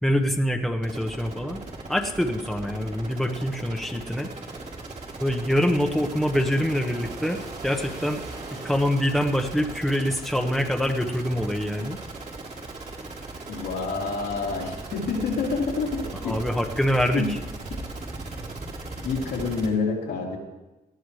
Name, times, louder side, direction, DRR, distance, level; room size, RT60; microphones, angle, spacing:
voice 1, 0.0-1.6 1.9-4.3 5.2-8.2 8.5-12.0 16.2-17.4, equal, ahead, 2 dB, 1.3 m, -25 dB
sound 1, 0.8-19.7, right 3 dB, 45° right, 3.6 m, -38 dB
voice 2, 13.5-16.4 17.1-17.3 19.0-20.4, left 4 dB, 90° left, -3 dB, 3.1 m, -28 dB
18.5 x 14.0 x 3.3 m, 1.0 s
cardioid pair, 70°, 17 cm